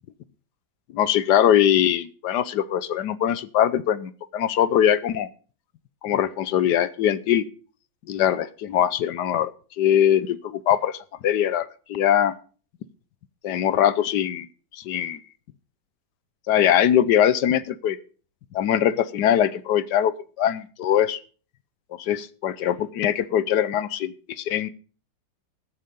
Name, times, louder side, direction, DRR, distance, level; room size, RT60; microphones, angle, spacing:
voice 1, 0.9-5.3 6.0-7.4 8.1-9.5 9.8-12.3 13.4-14.5 14.7-15.2 16.5-18.0 18.5-21.2 22.0-24.7, left 10 dB, 70° left, 17 dB, 1.2 m, -22 dB
14.0 x 8.4 x 5.2 m, 0.39 s
omnidirectional pair, 2.0 m